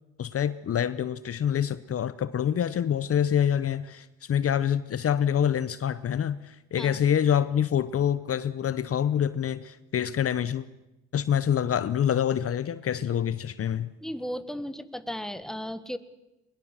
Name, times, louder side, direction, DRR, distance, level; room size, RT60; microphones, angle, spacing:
voice 1, 0.2-10.7 11.1-13.9, left 9 dB, 50° left, 0.8 m, -26 dB
voice 2, 14.0-16.0, equal, ahead, 1.4 m, -35 dB
21.5 x 21.5 x 7.5 m
cardioid pair, 90°, 30 cm